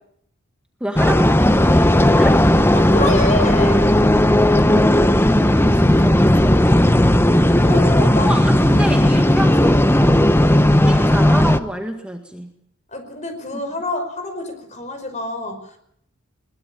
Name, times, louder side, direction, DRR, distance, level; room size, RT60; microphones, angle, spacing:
voice 1, 0.8-2.4 5.0-7.0 8.0-10.3 10.8-12.5, right 1 dB, 5° right, 4 dB, 1.9 m, -27 dB
sound 1, 1.0-11.6, left 1 dB, 10° left, 0.9 m, -15 dB
voice 2, 2.7-3.9 7.6-8.4 12.9-15.8, left 2 dB, 35° left, 7 dB, 5.4 m, -26 dB
22.0 x 20.5 x 8.7 m, 0.71 s
head